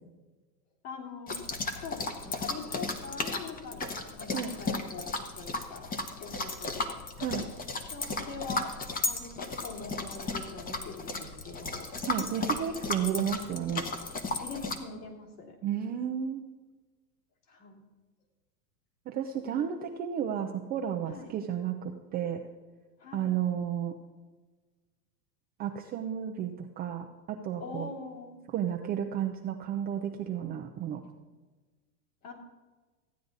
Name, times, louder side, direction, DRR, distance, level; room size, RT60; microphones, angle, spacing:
voice 1, 0.8-1.3 1.8-5.9 6.2-7.0 7.8-8.7 9.0-11.9 14.4-15.5 17.5-17.8 21.1-21.3 23.0-23.4 27.6-28.3 32.2-32.3, left 4 dB, 45° left, 0 dB, 3.2 m, -43 dB
sound 1, 1.3-14.8, left 3 dB, 15° left, 1.0 m, -35 dB
voice 2, 12.1-13.8 15.6-16.4 19.1-22.4 23.1-23.9 25.6-27.9 28.5-31.0, right 9 dB, 20° right, 3 dB, 0.4 m, -32 dB
14.5 x 9.4 x 4.0 m, 1.3 s
hypercardioid pair, 120°, 50 cm